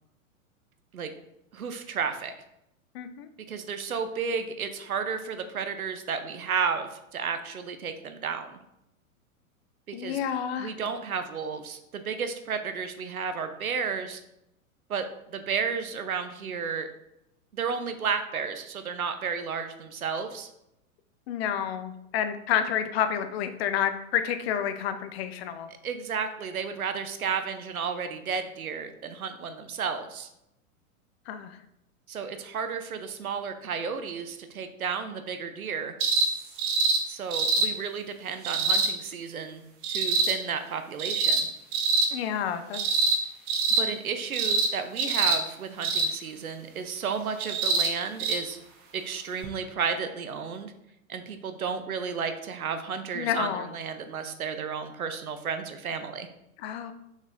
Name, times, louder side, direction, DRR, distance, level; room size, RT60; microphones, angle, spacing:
voice 1, 1.5-2.3 3.5-8.6 9.9-10.2 10.6-14.2 14.9-15.1 15.3-16.9 17.5-20.5 25.8-30.3 32.1-35.9 37.1-41.5 43.8-48.6 48.9-50.7 51.1-56.3, right 6 dB, 80° right, 9 dB, 0.8 m, -32 dB
voice 2, 2.9-3.3 9.9-10.7 21.3-25.7 31.3-31.6 42.1-42.8 53.1-53.7 56.6-56.9, left 9 dB, 45° left, 9 dB, 0.7 m, -29 dB
sound 1, 36.0-36.3 36.6-37.0 37.3-37.7 38.4-38.9 39.8-40.3 41.0-41.4 41.7-42.1 42.7-43.2 43.5-43.8 44.3-44.7 45.0-45.4 45.8-46.1 47.4-47.9 48.2-48.4 49.4-49.5, right 3 dB, 40° right, 1.2 m, -24 dB
6.1 x 4.0 x 3.9 m, 0.84 s
figure-of-eight pair, 100°, 42 cm